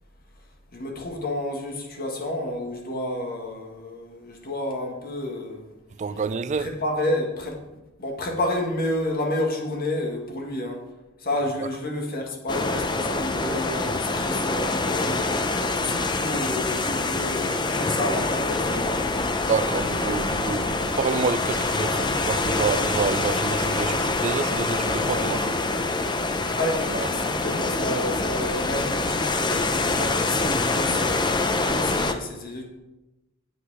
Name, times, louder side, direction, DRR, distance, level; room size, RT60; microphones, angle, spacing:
voice 1, 0.7-5.7 6.6-7.6 8.0-10.8 11.2-19.1 26.5-32.7, left 1 dB, 50° left, 1.7 m, -30 dB
voice 2, 6.0-6.7 19.3-25.7 26.9-27.1, right 5 dB, 35° right, 0.4 m, -28 dB
sound 1, 12.5-32.1, left 3 dB, 20° left, 0.6 m, -25 dB
8.2 x 8.0 x 4.8 m
head